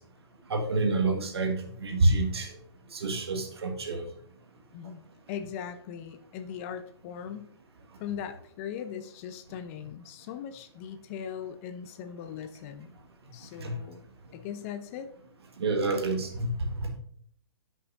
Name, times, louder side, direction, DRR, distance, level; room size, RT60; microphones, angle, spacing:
voice 1, 0.5-2.6 2.9-4.0 13.6-13.7 15.6-16.9, right 2 dB, 70° right, 3 dB, 1.6 m, -28 dB
voice 2, 4.7-7.5 8.0-13.0 13.3-14.0 14.3-15.1, left 8 dB, 35° left, 9 dB, 0.7 m, -39 dB
11.0 x 6.2 x 2.6 m, 0.64 s
hypercardioid pair, 130°, 14 cm